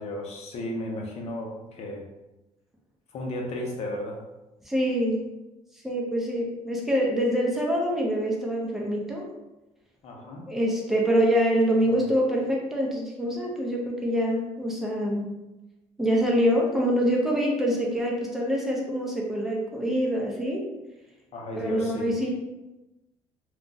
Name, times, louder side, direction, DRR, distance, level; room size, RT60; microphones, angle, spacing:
voice 1, 0.0-2.0 3.1-4.2 10.0-10.4 11.8-12.0 21.3-22.1, left 1 dB, 55° left, 0 dB, 0.8 m, -34 dB
voice 2, 4.7-5.2 5.8-9.3 10.5-15.4 16.0-20.6 21.5-22.3, equal, ahead, -2 dB, 0.7 m, -25 dB
2.4 x 2.2 x 3.9 m, 1.0 s
cardioid pair, 115°, 13 cm